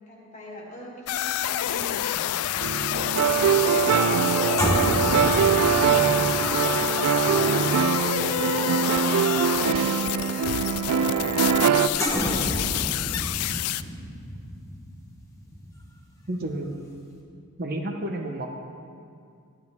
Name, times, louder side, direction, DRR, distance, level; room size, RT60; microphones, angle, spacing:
voice 1, 0.1-6.2 6.7-8.8 9.4-11.1 11.7-13.1, equal, 35° left, -3 dB, 2.1 m, -44 dB
sound 1, 1.1-13.8, left 12 dB, 80° left, 0.3 m, -28 dB
sound 2, 2.5-9.1 9.4-9.6 12.0-16.6 16.9-17.1, equal, 15° left, 1.2 m, -31 dB
sound 3, 2.6-11.9, right 7 dB, 90° right, 0.4 m, -23 dB
voice 2, 16.3-16.8 17.6-18.5, right 1 dB, 45° right, 2 dB, 0.8 m, -30 dB
12.0 x 10.5 x 3.6 m, 2.3 s
head